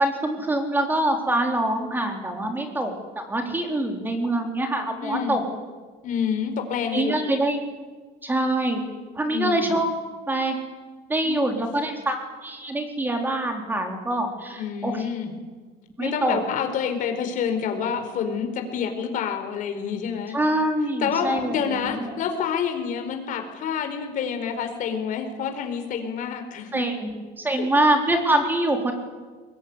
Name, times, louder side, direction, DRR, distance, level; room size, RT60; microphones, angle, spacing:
voice 1, 0.0-5.4 6.9-7.6 8.2-8.8 9.2-9.9 10.3-10.6 11.1-15.1 16.0-16.4 20.3-22.2 26.7-28.9, right 1 dB, 10° right, 4 dB, 3.9 m, -25 dB
voice 2, 5.0-5.4 6.0-7.2 9.3-9.7 11.2-11.5 14.6-15.3 16.0-20.4 21.0-26.8 27.5-27.7, left 7 dB, 45° left, 6 dB, 4.6 m, -28 dB
23.0 x 22.0 x 9.7 m, 1.4 s
cardioid pair, 155°, 19 cm